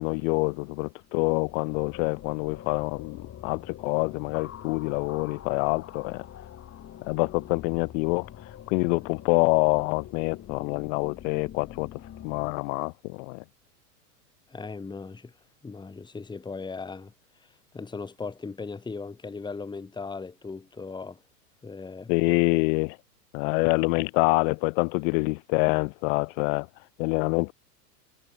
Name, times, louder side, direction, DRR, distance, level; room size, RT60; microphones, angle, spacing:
voice 1, 0.0-6.2 7.0-8.3 8.7-13.4 22.1-23.0 23.3-26.7 27.0-27.5, left 34 dB, 50° left, 1.9 m, -26 dB
sound 1, 1.0-12.5, left 10 dB, 30° left, 5.5 m, -45 dB
voice 2, 14.5-15.3 15.6-17.1 17.7-21.2 21.6-22.1, left 4 dB, 10° left, 1.9 m, -38 dB
hypercardioid pair, 110°, 48 cm